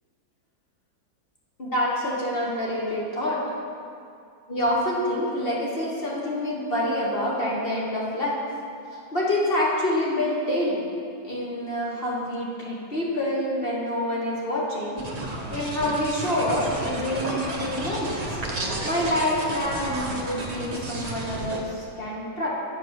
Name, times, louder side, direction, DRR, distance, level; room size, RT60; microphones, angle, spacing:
voice 1, 1.6-3.4 4.5-8.4 8.9-10.9 11.2-15.1 15.5-22.5, left 1 dB, 35° left, -4 dB, 1.1 m, -27 dB
sound 1, 15.0-21.6, right 1 dB, 80° right, 0.3 m, -32 dB
8.3 x 4.9 x 5.8 m, 2.4 s
omnidirectional pair, 2.1 m